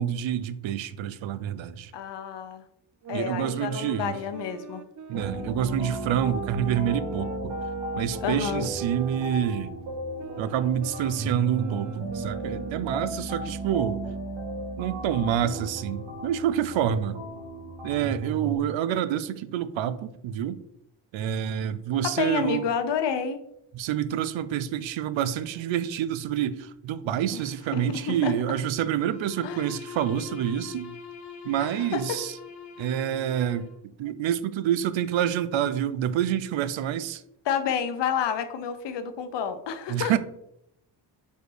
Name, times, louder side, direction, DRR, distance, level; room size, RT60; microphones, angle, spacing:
voice 1, 0.0-1.9 3.1-4.2 5.1-7.5 8.0-9.7 10.4-14.0 14.8-17.2 17.8-20.6 21.1-22.6 23.7-30.9 31.4-32.3 32.8-33.7 34.0-37.2 39.9-40.2, right 10 dB, 85° right, 0.6 m, -27 dB
voice 2, 1.9-2.6 3.1-4.8 8.2-8.7 22.2-23.4 27.3-27.4 27.7-28.3 29.4-29.7 31.6-32.2 37.4-40.2, left 7 dB, 70° left, 0.8 m, -29 dB
sound 1, 3.0-9.7 10.2-13.2, right 6 dB, 45° right, 0.4 m, -40 dB
sound 2, 5.1-18.6, right 1 dB, 70° right, 1.7 m, -35 dB
Bowed string instrument, 28.9-33.8, left 6 dB, 40° left, 1.2 m, -43 dB
5.0 x 4.5 x 4.7 m
wide cardioid pair, 175°, 44 cm